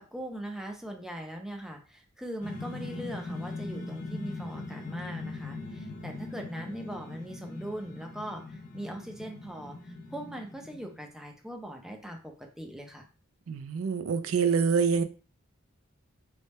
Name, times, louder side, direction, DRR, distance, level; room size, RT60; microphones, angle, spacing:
voice 1, 0.0-13.1, equal, 5° right, 0.6 m, -40 dB
sound 1, 2.4-11.0, left 2 dB, 40° left, 0.7 m, -40 dB
voice 2, 13.5-15.0, right 5 dB, 75° right, 0.4 m, -26 dB
3.3 x 2.2 x 4.1 m
head